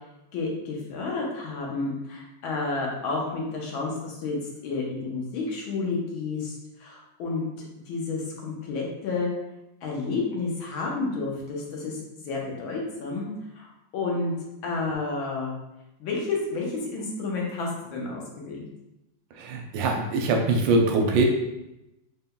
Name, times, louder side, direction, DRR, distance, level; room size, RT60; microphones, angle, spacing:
voice 1, 0.3-4.4 4.6-7.5 7.9-9.3 9.8-13.3 13.5-13.7 13.9-14.3 14.6-15.5 16.0-18.7, left 3 dB, 90° left, -2 dB, 1.7 m, -30 dB
voice 2, 19.4-21.3, right 3 dB, 80° right, 2 dB, 1.3 m, -23 dB
4.1 x 3.7 x 2.2 m, 0.93 s
omnidirectional pair, 2.1 m